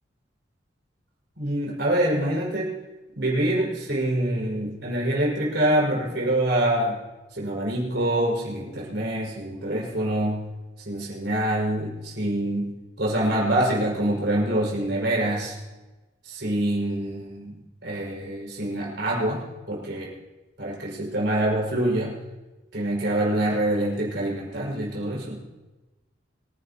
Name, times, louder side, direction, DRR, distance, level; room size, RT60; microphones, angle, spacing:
voice 1, 1.4-2.7 3.2-7.0 7.3-10.4 10.8-12.7 13.0-15.5 16.2-20.1 20.6-22.1 22.7-25.4, right 1 dB, 70° right, -3 dB, 6.0 m, -25 dB
25.5 x 11.0 x 2.9 m, 1.1 s
head